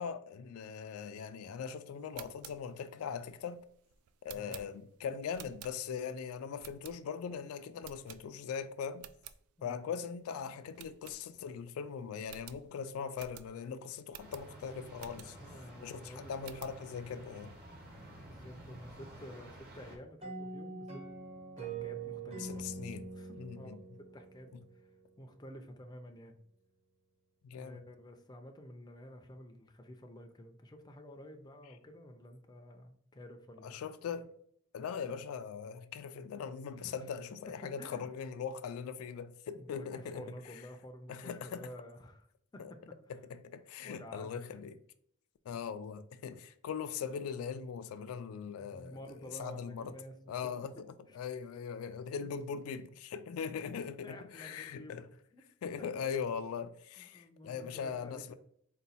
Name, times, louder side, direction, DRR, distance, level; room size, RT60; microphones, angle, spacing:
voice 1, 0.0-3.6 4.2-9.1 9.6-15.4 15.8-17.5 22.4-23.1 23.4-23.8 27.4-27.8 33.6-34.3 34.7-40.2 41.1-41.7 42.6-42.7 43.1-44.8 45.5-49.9 50.3-50.9 51.1-55.1 55.6-58.3, left 6 dB, 80° left, 0.3 m, -40 dB
sound 1, 2.0-6.1 6.6-7.3 7.8-8.6 8.9-9.4 9.8-9.9 10.2-10.3 10.7-11.7 11.9-12.0 12.2-15.6 16.0-16.8, right 10 dB, 80° right, 0.3 m, -52 dB
sound 2, 14.2-20.0, right 1 dB, 45° right, 1.2 m, -52 dB
voice 2, 15.3-16.3 18.0-21.0 21.6-22.6 23.1-24.9 25.2-26.4 27.5-33.8 36.8-36.9 37.6-38.1 39.5-42.3 42.5-43.0 43.8-44.4 48.6-50.1 50.4-50.5 51.1-51.2 52.2-52.3 54.0-55.4 57.0-58.3, equal, 20° left, 0.4 m, -51 dB
sound 3, 20.2-24.8, right 4 dB, 30° right, 0.8 m, -44 dB
4.0 x 2.2 x 4.0 m
head